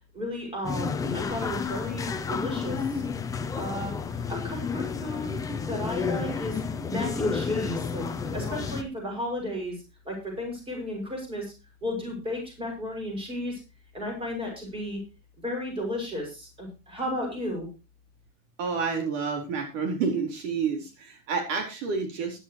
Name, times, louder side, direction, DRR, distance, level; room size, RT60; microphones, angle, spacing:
voice 1, 0.1-3.0 3.6-5.4 5.7-6.6 6.9-8.1 8.3-11.5 11.8-13.6 13.9-15.0 15.4-17.7, left 1 dB, 15° right, 1 dB, 6.0 m, -34 dB
sound 1, 0.6-8.8, left 5 dB, 10° left, 0.6 m, -31 dB
voice 2, 18.6-22.4, right 5 dB, 65° right, 4 dB, 4.3 m, -29 dB
16.0 x 11.5 x 3.0 m, 0.28 s
supercardioid pair, 170°, 40 cm